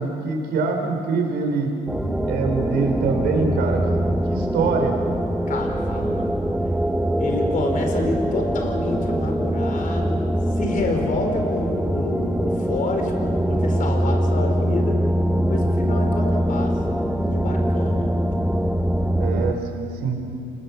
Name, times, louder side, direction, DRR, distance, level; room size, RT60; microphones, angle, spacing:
voice 1, 0.0-1.7 2.2-5.0 19.2-20.2, right 4 dB, 75° right, 3 dB, 4.5 m, -24 dB
sound 1, 1.9-19.5, equal, 5° right, 1.1 m, -23 dB
voice 2, 5.5-6.3 7.2-10.2 10.5-15.0 15.5-16.8 17.3-18.1, left 3 dB, 50° left, 3 dB, 4.8 m, -28 dB
29.0 x 19.5 x 7.3 m, 2.5 s
cardioid pair, 110°, 17 cm